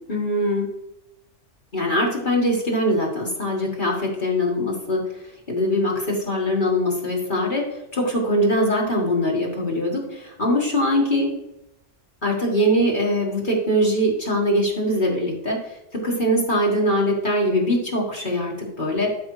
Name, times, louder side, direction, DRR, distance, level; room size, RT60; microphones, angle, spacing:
voice 1, 0.1-0.7 1.7-11.3 12.2-19.1, equal, 45° left, -3 dB, 1.8 m, -22 dB
12.5 x 5.3 x 3.2 m, 0.87 s
omnidirectional pair, 1.2 m